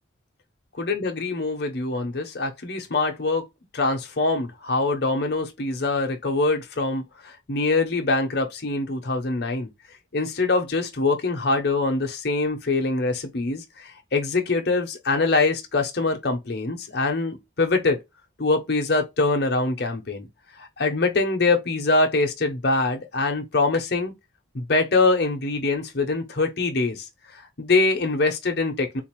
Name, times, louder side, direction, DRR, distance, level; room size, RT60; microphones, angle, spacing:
voice 1, 0.8-3.4 3.7-9.7 10.1-18.0 18.4-20.3 20.8-24.1 24.5-27.0 27.6-29.0, left 3 dB, 55° left, 0.8 m, -24 dB
4.0 x 2.5 x 3.0 m
head